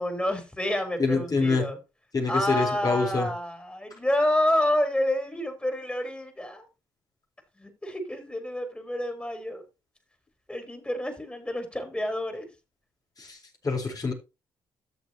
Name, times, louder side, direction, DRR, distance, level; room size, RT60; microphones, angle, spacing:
voice 1, 0.0-1.8 2.3-6.6 7.6-9.6 10.5-12.5, left 1 dB, 10° left, 7 dB, 4.2 m, -28 dB
voice 2, 1.0-1.6 2.1-3.3 13.2-13.4 13.6-14.1, left 3 dB, 40° left, 2 dB, 4.3 m, -25 dB
13.5 x 7.1 x 3.0 m, 0.27 s
hypercardioid pair, 50°, 10 cm